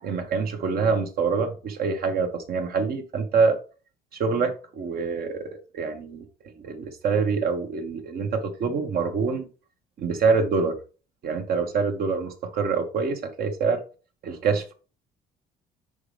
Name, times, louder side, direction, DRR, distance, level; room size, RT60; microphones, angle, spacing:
voice 1, 0.0-3.6 4.1-6.3 6.5-9.5 10.0-10.8 11.2-13.8 14.2-14.7, right 5 dB, 65° right, 5 dB, 1.5 m, -25 dB
6.1 x 5.1 x 3.5 m, 0.35 s
cardioid pair, 110°, 17 cm